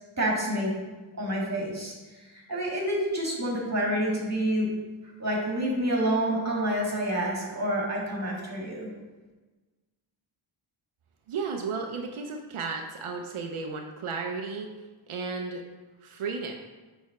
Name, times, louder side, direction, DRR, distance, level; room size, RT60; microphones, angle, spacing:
voice 1, 0.2-0.7 1.2-4.7 5.2-8.9, right 1 dB, 35° right, -2 dB, 1.8 m, -28 dB
voice 2, 11.3-14.7 15.1-15.6 16.0-16.5, right 4 dB, 85° right, 3 dB, 0.6 m, -33 dB
6.4 x 3.5 x 4.7 m, 1.2 s
wide cardioid pair, 85°, 48 cm